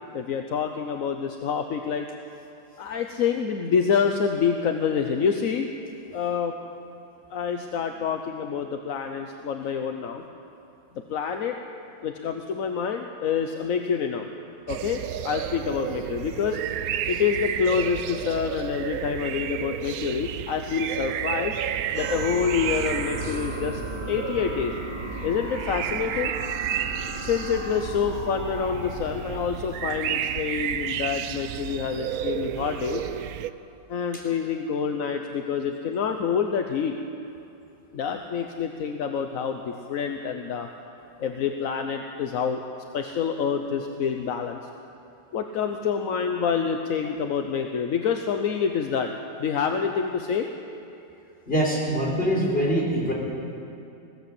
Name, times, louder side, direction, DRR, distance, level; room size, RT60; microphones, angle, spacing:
voice 1, 0.1-2.1 2.8-5.7 6.1-6.5 7.3-10.3 10.9-11.6 12.0-14.3 14.7-16.6 17.1-21.6 21.9-23.8 24.1-24.7 25.2-26.3 27.2-33.0 33.9-36.9 37.9-40.7 41.2-42.6 42.9-44.6 45.3-49.1 49.4-50.5, left 6 dB, 55° left, 5 dB, 1.1 m, -27 dB
sound 1, 14.7-33.5, right 10 dB, 65° right, 0.9 m, -32 dB
sound 2, 21.9-29.4, right 1 dB, 30° right, 6.7 m, -36 dB
voice 2, 51.5-53.1, equal, 30° left, -3 dB, 4.4 m, -24 dB
20.5 x 16.5 x 7.9 m, 2.7 s
omnidirectional pair, 2.0 m